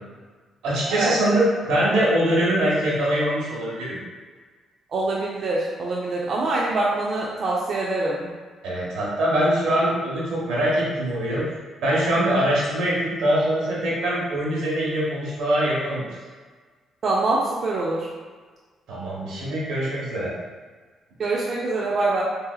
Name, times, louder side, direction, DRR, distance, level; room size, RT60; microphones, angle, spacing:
voice 1, 0.6-4.0 8.6-11.4 11.8-16.0 18.9-20.3, right 1 dB, 85° right, -6 dB, 1.1 m, -23 dB
voice 2, 4.9-8.3 17.0-18.1 21.2-22.2, right 2 dB, 50° right, -4 dB, 0.4 m, -24 dB
3.7 x 2.7 x 2.3 m, 1.5 s
cardioid pair, 90°, 0 cm